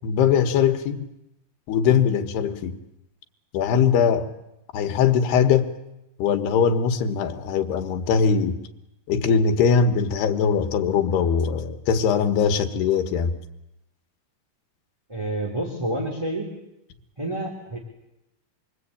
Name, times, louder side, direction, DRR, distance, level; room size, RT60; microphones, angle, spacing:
voice 1, 0.0-1.1 1.7-2.8 3.5-4.3 4.7-5.7 6.2-8.5 9.1-13.4, left 6 dB, 85° left, 3.5 m, -21 dB
voice 2, 15.1-16.5 17.2-17.8, right 1 dB, 10° right, 3.1 m, -28 dB
26.5 x 23.0 x 8.6 m
omnidirectional pair, 4.6 m